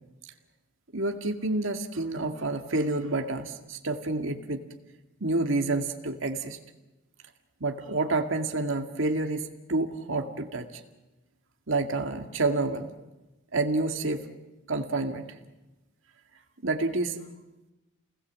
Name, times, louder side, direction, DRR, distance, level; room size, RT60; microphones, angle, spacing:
voice 1, 0.9-4.6 5.2-6.6 7.6-10.7 11.7-12.9 13.5-14.3 14.7-15.3 16.6-17.2, right 2 dB, 65° right, 3 dB, 2.1 m, -28 dB
30.0 x 20.0 x 7.5 m, 1.0 s
head